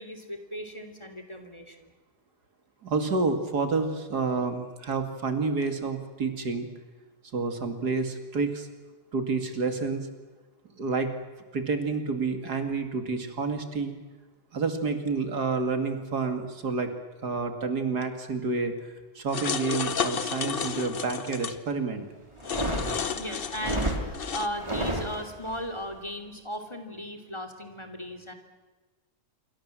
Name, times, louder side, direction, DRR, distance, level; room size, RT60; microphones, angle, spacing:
voice 1, 0.0-1.9 23.1-28.3, equal, 15° left, 6 dB, 3.0 m, -37 dB
voice 2, 2.8-6.7 7.3-8.7 9.1-10.1 10.8-11.1 11.5-13.9 14.5-16.9 17.2-18.7 19.1-22.1, right 4 dB, 70° right, 7 dB, 2.9 m, -29 dB
sound 1, 19.3-21.5 22.4-24.5, left 6 dB, 40° left, 0.9 m, -32 dB
sound 2, 22.4-25.6, right 1 dB, 15° right, 3.4 m, -31 dB
27.5 x 24.0 x 7.6 m, 1.2 s
omnidirectional pair, 1.8 m